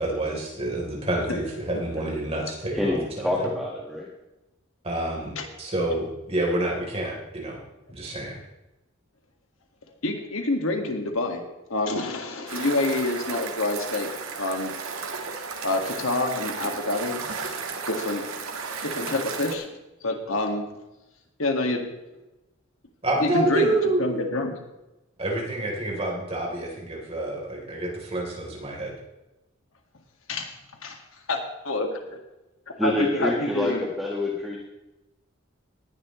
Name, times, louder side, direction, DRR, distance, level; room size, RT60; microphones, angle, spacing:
voice 1, 0.0-3.3 4.8-5.3 5.6-7.6 7.9-8.4 23.0-24.2 25.2-28.9, right 1 dB, 30° right, -2 dB, 3.5 m, -28 dB
voice 2, 2.7-4.1 32.8-33.7 34.0-34.6, left 1 dB, ahead, -3 dB, 1.5 m, -27 dB
voice 3, 10.0-11.4 11.7-14.1 14.4-14.8 15.6-17.2 17.9-18.3 18.8-19.7 20.0-20.7 21.4-21.9 23.2-24.5 30.3-31.0 31.3-31.4 31.7-31.9 32.8-33.9, left 2 dB, 80° left, 3 dB, 1.9 m, -27 dB
sound 1, 12.5-19.5, right 5 dB, 85° right, 1.7 m, -34 dB
18.5 x 11.0 x 3.1 m, 1.0 s
head